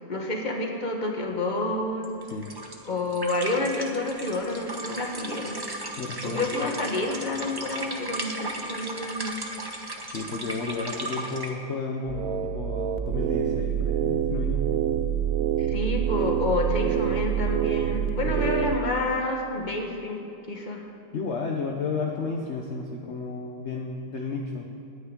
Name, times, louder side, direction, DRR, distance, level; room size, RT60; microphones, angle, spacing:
voice 1, 0.1-2.1 2.8-5.6 6.2-9.3 15.6-20.2 20.5-20.8, left 2 dB, 25° left, 1 dB, 1.4 m, -29 dB
sound 1, 2.0-11.5, right 2 dB, 20° right, 0.7 m, -36 dB
voice 2, 6.0-6.7 10.1-14.7 18.3-18.5 21.1-24.7, left 4 dB, 50° left, 1 dB, 0.9 m, -32 dB
sound 2, 12.1-18.8, right 9 dB, 65° right, 0.9 m, -26 dB
9.7 x 9.4 x 9.7 m, 2.7 s
omnidirectional pair, 2.1 m